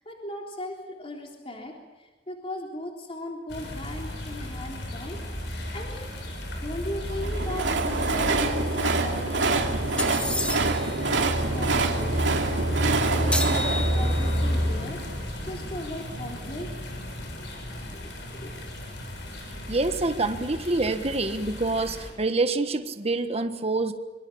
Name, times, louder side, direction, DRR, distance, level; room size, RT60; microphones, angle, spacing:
voice 1, 0.0-6.1 6.6-16.7 17.9-18.6, left 1 dB, 30° left, 1 dB, 3.5 m, -38 dB
sound 1, 3.5-22.1, equal, 75° left, 6.9 m, -31 dB
Train, 7.1-15.2, right 3 dB, 80° right, 2.5 m, -27 dB
sound 2, 10.0-10.9 13.3-14.4, left 2 dB, 5° left, 2.3 m, -30 dB
voice 2, 19.7-23.9, right 2 dB, 35° right, 8 dB, 1.4 m, -26 dB
26.0 x 24.0 x 7.2 m, 1.2 s
head